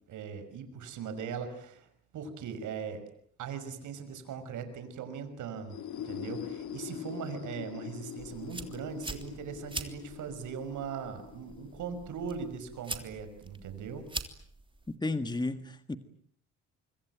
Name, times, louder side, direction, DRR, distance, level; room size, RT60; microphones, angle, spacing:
voice 1, 0.1-1.9 2.1-3.0 3.4-14.1, right 6 dB, 80° right, 10 dB, 5.7 m, -40 dB
sound 1, 5.6-13.2, left 10 dB, 75° left, 2.3 m, -44 dB
sound 2, 8.2-15.0, right 2 dB, 15° right, 3.2 m, -44 dB
voice 2, 14.9-16.0, left 2 dB, 15° left, 11 dB, 1.7 m, -33 dB
25.0 x 25.0 x 9.3 m, 0.64 s
cardioid pair, 90°, 30 cm